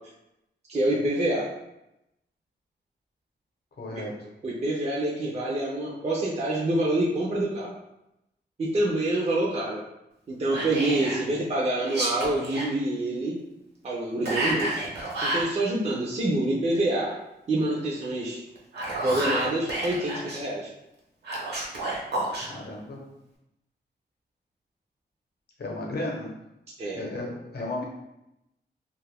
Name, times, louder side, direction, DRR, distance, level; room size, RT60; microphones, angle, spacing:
voice 1, 0.7-1.5 3.9-4.0 4.4-7.7 8.6-9.8 10.3-13.4 13.8-14.9 15.3-17.2 17.5-18.4 19.0-20.7 26.8-27.0, right 1 dB, 35° right, -5 dB, 0.5 m, -26 dB
voice 2, 3.8-4.1 22.4-23.0 25.6-26.3 26.9-27.8, left 2 dB, 65° left, -1 dB, 0.8 m, -34 dB
Whispering, 10.5-11.2 11.8-12.7 14.2-15.5 18.5-20.4 21.2-22.5, right 1 dB, 65° right, 0.9 m, -30 dB
2.5 x 2.4 x 3.3 m, 0.88 s
wide cardioid pair, 150°, 18 cm